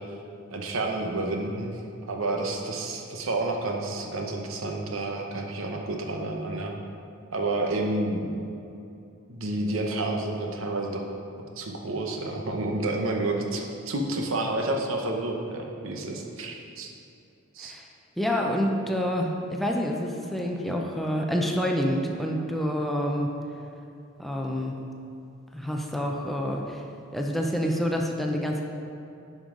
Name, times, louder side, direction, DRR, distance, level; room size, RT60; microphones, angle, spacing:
voice 1, 0.5-1.7 2.1-6.7 7.3-8.4 9.3-11.0 11.6-16.9 17.5-17.7, right 2 dB, 75° right, 2 dB, 0.9 m, -30 dB
voice 2, 18.2-23.3 24.2-24.8 25.5-26.8 27.1-28.6, equal, ahead, 0 dB, 0.5 m, -27 dB
9.8 x 5.4 x 3.8 m, 2.6 s
head